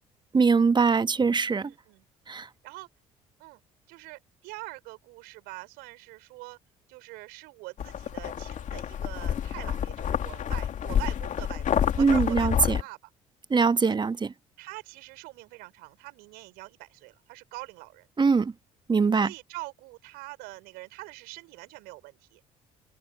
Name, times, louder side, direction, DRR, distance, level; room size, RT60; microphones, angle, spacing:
voice 1, 0.3-1.7 2.3-2.5 12.0-12.8 13.5-14.2 18.2-18.5 18.9-19.3, right 5 dB, 25° right, 1.3 m, -22 dB
voice 2, 1.6-2.1 2.6-2.9 3.4-3.6 3.9-6.6 6.9-13.0 13.6-14.0 14.6-18.1 19.1-22.4, right 24 dB, 65° right, 4.5 m, -44 dB
sound 1, 7.8-12.8, left 9 dB, 45° left, 2.9 m, -29 dB
figure-of-eight pair, 50°, 17 cm